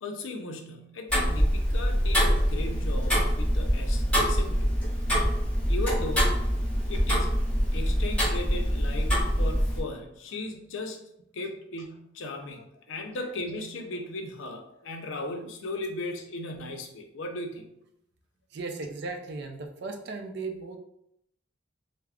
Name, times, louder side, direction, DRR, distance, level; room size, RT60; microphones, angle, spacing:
voice 1, 0.0-4.7 5.7-6.4 6.9-7.4 7.7-11.0 11.3-17.7, left 2 dB, 85° left, 4 dB, 0.5 m, -37 dB
Tick-tock, 1.1-9.8, equal, 5° left, 1.1 m, -25 dB
voice 2, 18.5-20.8, right 3 dB, 60° right, 4 dB, 0.4 m, -36 dB
3.4 x 2.0 x 2.3 m, 0.76 s
head